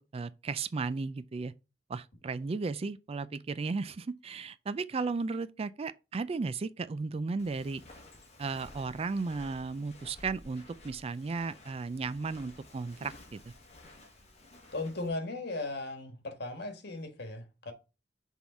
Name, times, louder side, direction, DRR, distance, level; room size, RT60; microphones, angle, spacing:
voice 1, 0.1-1.5 1.9-7.8 8.4-13.5, right 4 dB, 35° right, 0.3 m, -35 dB
Walk footsteps, 7.4-15.1, left 1 dB, 35° left, 1.4 m, -54 dB
voice 2, 14.7-17.7, left 2 dB, 60° left, 1.5 m, -37 dB
6.2 x 3.7 x 4.4 m
head